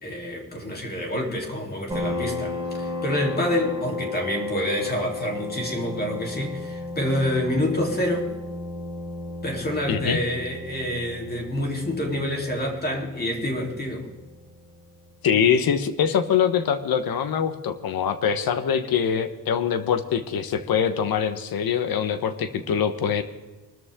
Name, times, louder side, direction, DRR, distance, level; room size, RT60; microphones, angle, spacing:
voice 1, 0.0-8.3 9.4-14.1, left 1 dB, 25° left, 0 dB, 3.5 m, -27 dB
sound 1, 1.9-15.2, left 2 dB, 10° right, 6.2 m, -34 dB
voice 2, 9.9-10.2 15.2-23.2, left 7 dB, 75° left, 10 dB, 1.2 m, -23 dB
24.5 x 13.5 x 3.7 m, 1.2 s
wide cardioid pair, 175°, 36 cm